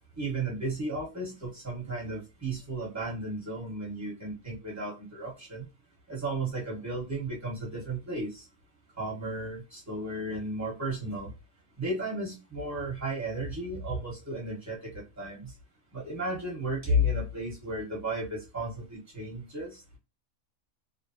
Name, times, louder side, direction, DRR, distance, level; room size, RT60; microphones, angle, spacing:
voice 1, 0.2-5.7 6.1-8.4 9.0-11.3 11.8-15.5 15.9-20.0, equal, 15° right, 1.1 m, -33 dB
3.0 x 2.1 x 2.7 m
omnidirectional pair, 1.4 m